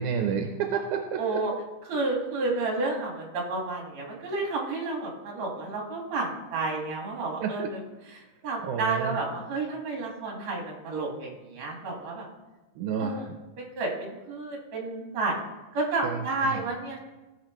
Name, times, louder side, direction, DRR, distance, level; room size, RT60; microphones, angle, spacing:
voice 1, 0.0-1.2 7.4-7.7 8.6-9.1 12.8-13.2 16.0-16.2 16.4-16.6, right 7 dB, 90° right, 3 dB, 2.2 m, -29 dB
voice 2, 1.2-1.5 1.8-12.3 13.0-13.3 13.6-15.3 15.7-17.0, right 3 dB, 65° right, 0 dB, 3.1 m, -31 dB
16.5 x 5.7 x 3.1 m, 1.1 s
omnidirectional pair, 3.4 m